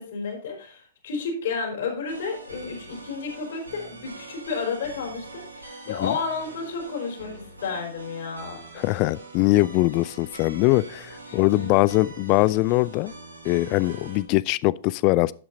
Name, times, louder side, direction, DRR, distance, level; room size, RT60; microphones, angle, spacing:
voice 1, 0.0-8.6 11.3-11.8, left 5 dB, 55° left, 4.7 m, -32 dB
sound 1, 2.1-14.2, right 2 dB, 85° right, 2.6 m, -43 dB
voice 2, 8.8-13.1 13.4-15.3, left 20 dB, 35° left, 0.3 m, -22 dB
12.0 x 8.5 x 2.7 m
figure-of-eight pair, 110°, 0 cm